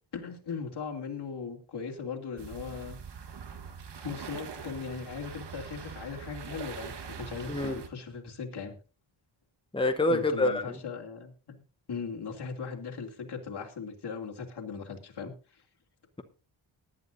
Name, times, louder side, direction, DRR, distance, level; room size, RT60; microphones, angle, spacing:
voice 1, 0.1-3.0 4.0-8.8 10.1-11.6 11.9-15.6, left 5 dB, 55° left, 0 dB, 2.7 m, -38 dB
sound 1, 2.4-7.9, right 6 dB, 60° right, 1.4 m, -43 dB
voice 2, 7.5-7.8 9.7-10.8, left 2 dB, 10° left, 7 dB, 1.0 m, -27 dB
19.5 x 10.5 x 2.6 m, 0.34 s
wide cardioid pair, 105°, 46 cm